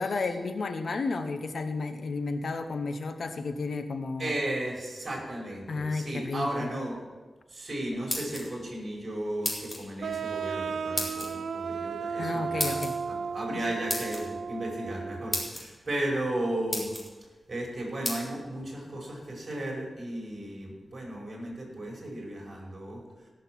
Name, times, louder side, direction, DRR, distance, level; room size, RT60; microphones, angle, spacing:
voice 1, 0.0-4.3 5.7-6.7 12.2-13.0 13.5-13.6, left 3 dB, 70° left, 8 dB, 1.1 m, -32 dB
voice 2, 4.2-7.0 7.5-16.9 17.5-23.3, right 1 dB, 45° right, -2 dB, 5.2 m, -35 dB
sound 1, 7.9-8.7 9.4-9.8 11.0-11.3 12.6-12.9 13.9-14.2 14.9-15.0 15.3-15.6 16.3-16.4 16.7-17.1 18.0-18.2, left 1 dB, 20° left, 3.6 m, -32 dB
sound 2, 10.0-15.5, right 5 dB, 85° right, 0.3 m, -34 dB
17.0 x 6.5 x 6.2 m, 1.3 s
wide cardioid pair, 80°, 0 cm